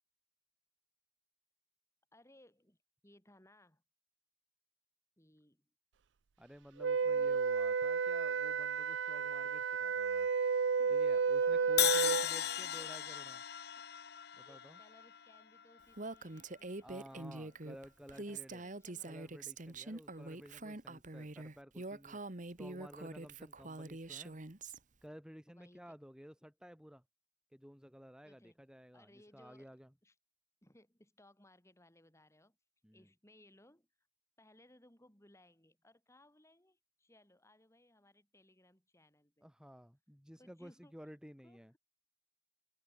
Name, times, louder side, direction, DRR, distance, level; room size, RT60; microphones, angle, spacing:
voice 1, 2.1-2.8 3.0-3.8 5.2-5.7 7.0-7.4 10.8-13.2 13.8-13.9 14.4-17.6 18.1-19.3 20.1-20.4 22.7-22.8 25.5-26.0 28.2-28.6 28.9-29.7 30.0-30.1 30.6-32.6 32.9-33.9 34.4-39.5 40.4-40.9 41.4-41.8, left 1 dB, 15° left, 5.5 m, -64 dB
voice 2, 6.4-10.3 10.9-13.4 14.4-14.8 16.8-18.6 19.0-24.4 25.0-27.0 27.5-29.9 32.8-33.1 39.4-41.7, equal, 5° right, 4.1 m, -54 dB
Wind instrument woodwind instrument, 6.8-12.3, right 5 dB, 85° right, 0.5 m, -32 dB
Crash cymbal, 11.8-15.8, left 12 dB, 60° left, 0.9 m, -36 dB
Female speech woman speaking, 16.0-24.8, right 2 dB, 45° right, 1.8 m, -45 dB
open air
head